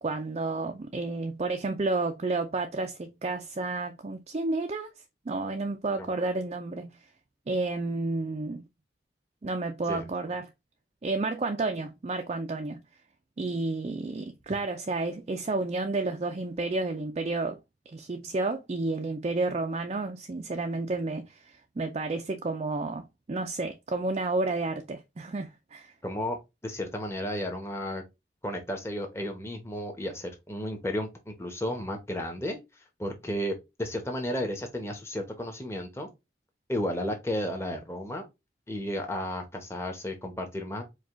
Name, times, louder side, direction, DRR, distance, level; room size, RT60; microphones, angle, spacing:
voice 1, 0.0-4.9 5.3-7.0 7.5-8.6 9.4-10.5 11.0-12.8 13.4-17.6 17.9-25.9, right 3 dB, 35° right, 0.4 m, -31 dB
voice 2, 26.0-28.0 28.4-32.6 33.0-36.1 36.7-38.3 38.7-40.8, left 1 dB, 15° left, 0.9 m, -33 dB
4.9 x 2.3 x 3.6 m
head